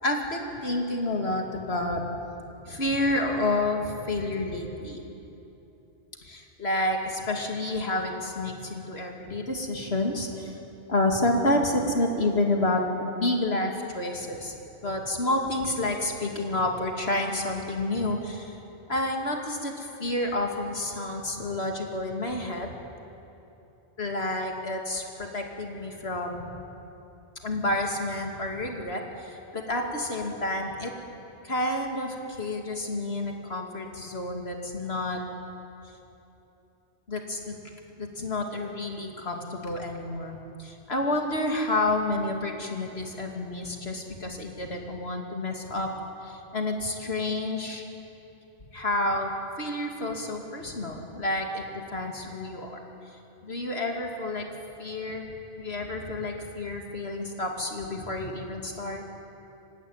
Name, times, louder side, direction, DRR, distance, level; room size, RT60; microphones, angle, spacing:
voice 1, 0.0-2.0 2.6-5.1 6.2-10.6 10.9-14.5 14.8-18.6 18.9-22.8 24.0-26.5 27.4-30.9 31.4-35.2 37.1-37.6 38.0-45.9 46.2-47.8 48.7-49.3 49.6-52.8 53.4-54.5 54.8-55.3 55.6-59.0, left 2 dB, 60° left, 2 dB, 2.8 m, -29 dB
27.5 x 15.5 x 9.5 m, 3.0 s
omnidirectional pair, 1.2 m